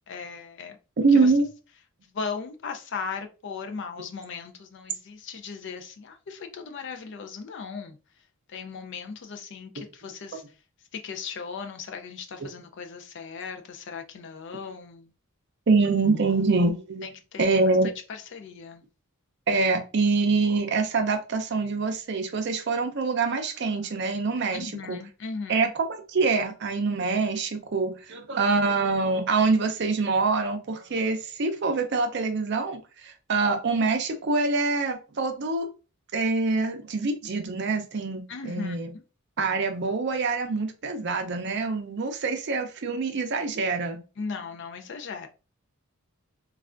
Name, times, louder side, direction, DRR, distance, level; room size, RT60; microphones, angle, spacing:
voice 1, 0.1-0.8 1.2-1.3 2.1-8.0 8.5-10.4 10.9-15.1 17.0-17.6 18.1-18.8 24.5-25.7 38.3-38.8 44.2-45.3, left 5 dB, 55° left, 0.4 m, -37 dB
voice 2, 1.0-1.5 15.7-17.0 17.4-17.9 19.5-25.0 25.5-35.7 36.1-38.9 39.4-44.0, right 3 dB, 50° right, 0.5 m, -25 dB
3.2 x 2.3 x 2.4 m
head